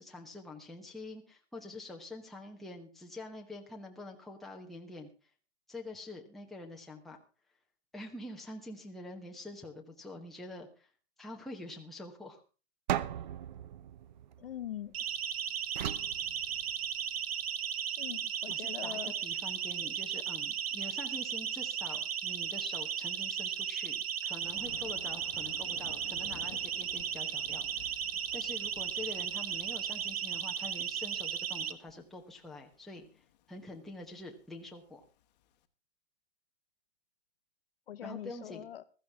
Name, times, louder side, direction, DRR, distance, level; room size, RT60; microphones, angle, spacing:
voice 1, 0.0-5.1 5.7-7.2 7.9-10.9 11.2-12.4 18.5-24.0 24.2-27.9 28.3-35.0 38.0-38.7, left 2 dB, ahead, 1.1 m, -46 dB
sound 1, 12.9-15.1 15.8-17.1, right 11 dB, 40° right, 0.7 m, -38 dB
voice 2, 14.4-14.9 18.0-19.1 37.9-38.8, left 11 dB, 55° left, 1.0 m, -42 dB
Siren, 14.9-31.7, right 8 dB, 60° right, 1.2 m, -36 dB
Thunder, 24.4-35.5, left 10 dB, 40° left, 1.3 m, -55 dB
15.5 x 13.5 x 3.5 m
hypercardioid pair, 150°, 34 cm